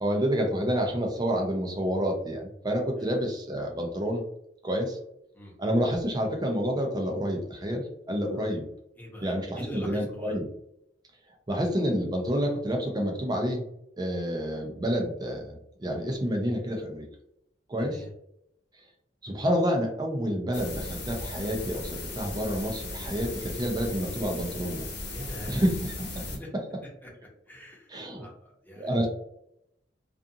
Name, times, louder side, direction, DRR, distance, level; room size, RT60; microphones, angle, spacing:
voice 1, 0.0-4.2 4.6-5.0 5.6-8.7 9.2-10.5 11.5-13.7 14.0-17.1 17.7-18.0 19.2-24.9 25.5-26.3 26.5-26.6 27.9-28.3 28.8-29.1, equal, 20° right, 1 dB, 0.5 m, -29 dB
voice 2, 9.0-10.3 17.8-18.1 25.1-25.6 26.3-26.5 27.0-27.1 27.5-29.1, equal, 10° left, -4 dB, 0.9 m, -43 dB
sound 1, 20.5-26.4, left 2 dB, 65° left, 0.9 m, -37 dB
2.5 x 2.4 x 2.6 m, 0.75 s
head